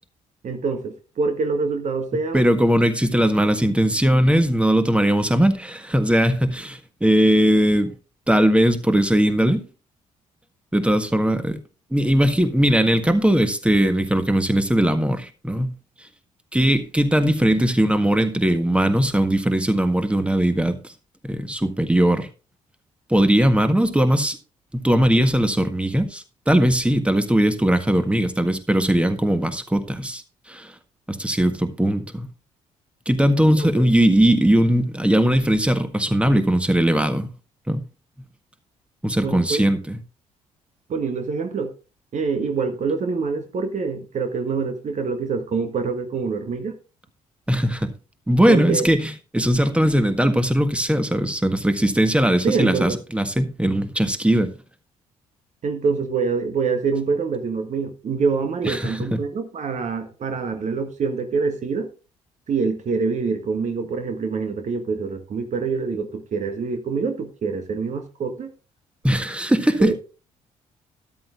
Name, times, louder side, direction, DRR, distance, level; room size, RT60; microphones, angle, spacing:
voice 1, 0.4-2.5 33.5-33.6 39.2-39.6 40.9-41.7 42.1-46.8 48.5-48.9 52.4-53.0 55.6-61.9 62.5-68.5 69.8-69.9, right 5 dB, 45° right, 1.6 m, -25 dB
voice 2, 2.3-7.9 8.3-9.7 10.7-11.6 11.9-15.8 16.5-20.9 21.2-22.3 23.1-24.4 24.7-30.2 30.5-30.7 31.1-32.3 33.0-37.3 37.7-37.8 39.0-40.0 47.5-47.9 48.3-54.5 58.6-59.2 69.0-69.9, right 1 dB, 5° right, 1.6 m, -19 dB
13.5 x 11.5 x 2.5 m
figure-of-eight pair, 45°, 17 cm